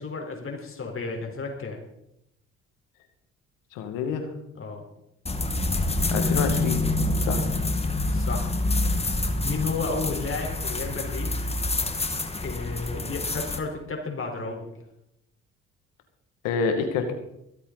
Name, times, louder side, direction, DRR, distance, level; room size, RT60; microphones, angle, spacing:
voice 1, 0.0-1.8 4.5-4.8 8.1-8.6 9.4-11.3 12.4-14.7, left 3 dB, 45° left, 1 dB, 4.5 m, -32 dB
voice 2, 3.7-4.3 6.1-6.8 7.2-7.4 16.4-17.1, left 5 dB, 80° left, 6 dB, 2.2 m, -27 dB
sound 1, 5.3-13.6, left 2 dB, 20° left, 1.8 m, -26 dB
24.0 x 8.5 x 4.1 m, 0.80 s
hypercardioid pair, 55°, 31 cm